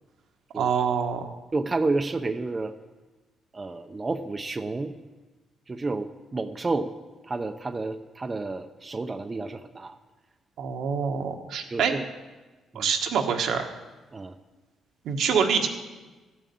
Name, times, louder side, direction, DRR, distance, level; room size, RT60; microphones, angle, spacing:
voice 1, 0.5-1.3 10.6-11.9 12.7-13.7 15.0-15.7, right 6 dB, 75° right, 4 dB, 1.5 m, -25 dB
voice 2, 1.5-2.7 3.5-4.9 5.7-6.9 7.3-10.0 11.7-12.0 12.7-12.9 14.1-14.3, right 3 dB, 25° right, 7 dB, 0.7 m, -30 dB
13.5 x 7.4 x 8.6 m, 1.2 s
cardioid pair, 90°, 0 cm